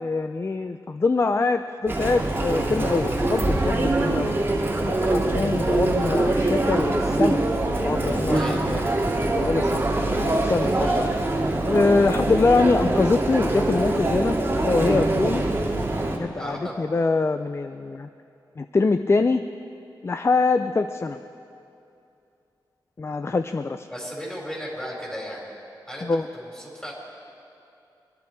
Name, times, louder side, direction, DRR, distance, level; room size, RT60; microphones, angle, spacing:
voice 1, 0.0-4.3 4.9-7.4 7.7-8.8 9.3-9.9 10.2-11.0 11.6-15.4 16.2-18.1 18.6-19.4 20.0-21.2 23.0-23.9 26.0-26.3, left 3 dB, 35° left, 10 dB, 0.4 m, -24 dB
Chatter, 1.9-16.2, right 2 dB, 25° right, 2.5 m, -23 dB
voice 2, 8.3-8.7 9.9-10.3 10.8-11.1 16.4-16.7 23.9-25.5 25.9-26.9, equal, 10° left, -2 dB, 4.7 m, -36 dB
24.0 x 11.0 x 4.7 m, 2.6 s
cardioid pair, 70°, 8 cm